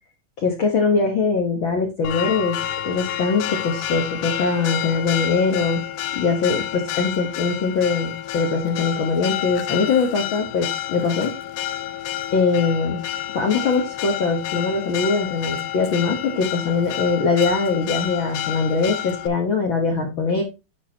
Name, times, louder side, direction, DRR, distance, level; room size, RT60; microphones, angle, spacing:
voice 1, 0.4-5.8 6.1-11.3 12.3-13.0 13.3-20.4, left 4 dB, 70° left, 2 dB, 1.1 m, -22 dB
Church bell, 2.0-19.3, left 11 dB, 85° left, 2.7 m, -29 dB
10.0 x 6.5 x 2.8 m, 0.26 s
omnidirectional pair, 4.2 m